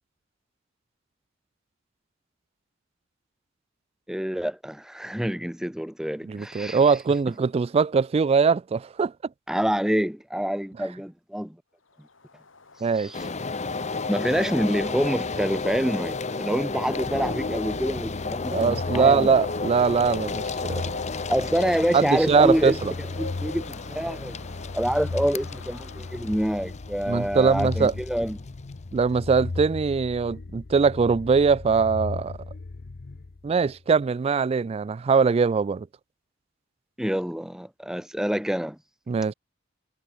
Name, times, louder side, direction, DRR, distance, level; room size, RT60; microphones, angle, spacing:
voice 1, 4.1-6.8 9.5-11.6 13.0-13.1 14.1-19.3 21.3-24.4 24.7-28.4 37.0-38.8, equal, 5° right, 0.7 m, -27 dB
voice 2, 6.2-9.1 12.8-13.1 18.5-21.0 21.9-22.9 27.1-27.9 28.9-32.4 33.4-35.9 39.1-39.3, right 5 dB, 30° right, 0.3 m, -22 dB
Bird, 12.0-26.7, left 3 dB, 80° left, 4.8 m, -43 dB
sound 1, 13.1-29.9, left 3 dB, 35° left, 1.0 m, -33 dB
sound 2, 17.0-33.8, left 3 dB, 50° left, 0.6 m, -37 dB
head